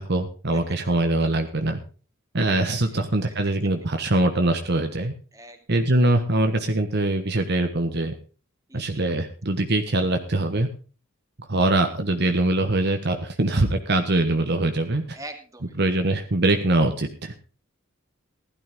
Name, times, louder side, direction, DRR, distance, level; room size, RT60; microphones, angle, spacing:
voice 1, 0.0-1.8 2.3-5.1 5.7-8.1 8.7-10.7 11.4-15.2 15.8-17.4, right 2 dB, 55° right, 6 dB, 1.3 m, -23 dB
voice 2, 2.8-3.3 5.3-5.6 8.7-9.0 15.1-15.8, right 2 dB, 15° right, 5 dB, 2.4 m, -43 dB
16.0 x 12.0 x 3.7 m, 0.37 s
head